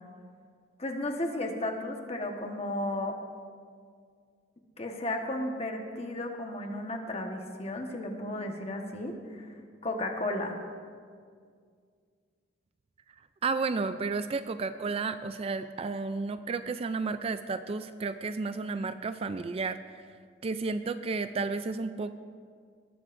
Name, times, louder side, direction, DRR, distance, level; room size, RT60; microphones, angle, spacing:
voice 1, 0.8-3.2 4.8-9.5 9.8-10.6, left 1 dB, 35° left, 3 dB, 1.3 m, -34 dB
voice 2, 13.4-19.8 20.4-22.1, right 4 dB, 35° right, 11 dB, 0.3 m, -32 dB
19.5 x 13.5 x 2.6 m, 2.1 s
head